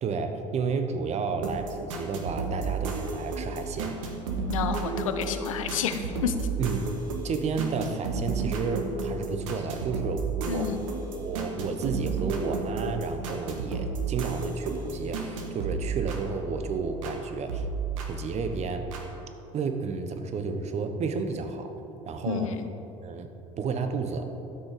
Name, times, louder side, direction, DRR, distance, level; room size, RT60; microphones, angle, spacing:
voice 1, 0.0-4.0 6.6-7.0 7.2-10.7 11.2-17.7 18.1-18.9 19.5-21.7 22.0-22.6 23.0-23.3 23.6-24.3, right 5 dB, 40° right, 7 dB, 1.1 m, -31 dB
sound 1, 1.4-17.2 17.5-19.1, right 4 dB, 80° right, 1.4 m, -33 dB
voice 2, 4.5-6.5 10.5-10.9 22.2-22.6, left 7 dB, 85° left, 8 dB, 0.7 m, -30 dB
12.5 x 6.4 x 5.1 m, 3.0 s
hypercardioid pair, 75°, 17 cm